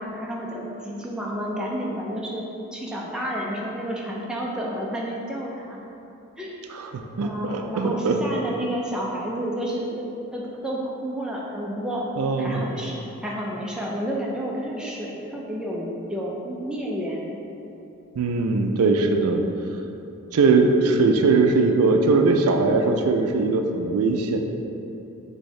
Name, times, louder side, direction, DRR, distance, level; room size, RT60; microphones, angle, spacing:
voice 1, 0.0-2.4 2.7-5.8 6.4-6.5 7.2-12.1 12.4-17.2, equal, 5° right, -4 dB, 0.4 m, -30 dB
voice 2, 6.7-8.2 12.2-12.7 18.2-19.4 20.3-24.4, right 3 dB, 80° right, 4 dB, 0.4 m, -20 dB
6.2 x 2.7 x 3.2 m, 2.9 s
head